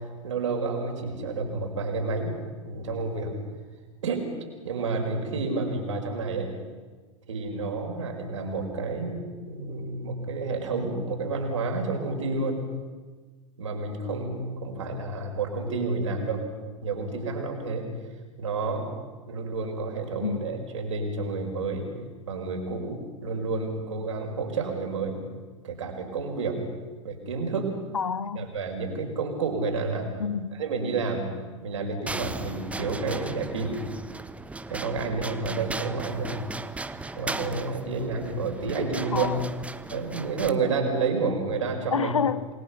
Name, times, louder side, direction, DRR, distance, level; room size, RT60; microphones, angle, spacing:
voice 1, 0.2-2.3 2.6-3.3 4.0-4.3 4.6-6.5 7.3-12.6 13.6-16.4 16.8-17.9 18.4-18.9 19.3-21.9 22.3-25.2 25.6-26.6 27.0-27.8 28.4-30.1 30.5-31.3 31.6-33.8 34.7-36.4 37.1-39.3 39.9-42.1, right 3 dB, 70° right, 5.2 m, -30 dB
voice 2, 27.9-28.5 30.2-30.6 39.1-39.5 41.9-42.5, left 6 dB, 80° left, 1.0 m, -28 dB
sound 1, 32.1-40.5, right 3 dB, 10° right, 0.9 m, -37 dB
27.5 x 20.5 x 5.9 m
figure-of-eight pair, 85°, 17 cm